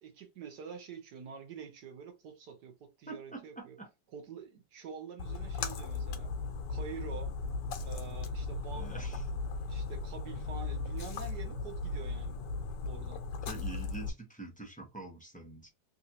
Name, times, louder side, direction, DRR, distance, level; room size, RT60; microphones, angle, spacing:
voice 1, 0.0-3.8 4.1-6.3 6.7-7.4 7.8-9.0 9.7-12.4 12.8-13.2, right 6 dB, 65° right, 1.4 m, -46 dB
voice 2, 3.1-3.9 8.7-9.2 13.5-15.7, right 3 dB, 10° left, 0.4 m, -45 dB
Splash splatter, 5.2-14.1, left 4 dB, 75° left, 1.3 m, -37 dB
3.3 x 2.7 x 2.8 m
omnidirectional pair, 1.9 m